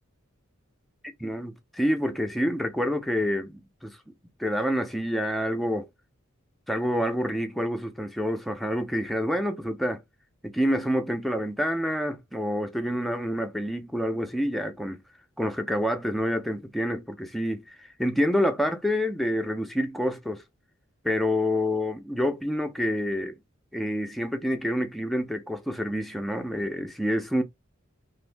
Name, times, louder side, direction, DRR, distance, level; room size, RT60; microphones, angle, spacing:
voice 1, 1.2-4.0 4.4-5.9 6.7-10.0 10.4-15.0 15.4-20.4 21.0-23.3 23.7-27.4, equal, ahead, 0.4 m, -27 dB
2.7 x 2.5 x 3.3 m
head